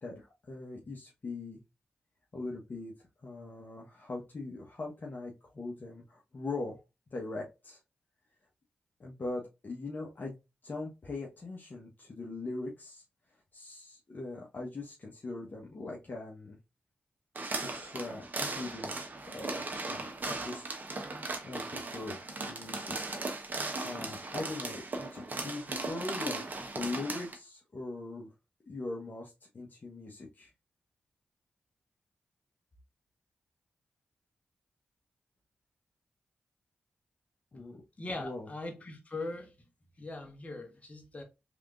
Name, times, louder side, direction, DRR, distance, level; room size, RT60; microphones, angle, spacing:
voice 1, 0.0-1.6 2.3-2.9 3.2-6.8 7.1-7.8 9.0-13.0 13.5-16.6 17.6-20.6 21.4-23.2 23.6-26.4 26.7-28.3 28.7-30.5 37.5-37.8 38.2-38.5, left 2 dB, 55° left, 1.1 m, -41 dB
sound 1, 17.4-27.4, right 3 dB, 50° right, 1.1 m, -37 dB
voice 2, 38.0-39.5 40.0-41.2, left 2 dB, 35° left, 1.5 m, -40 dB
3.5 x 3.5 x 2.5 m
cardioid pair, 45°, 4 cm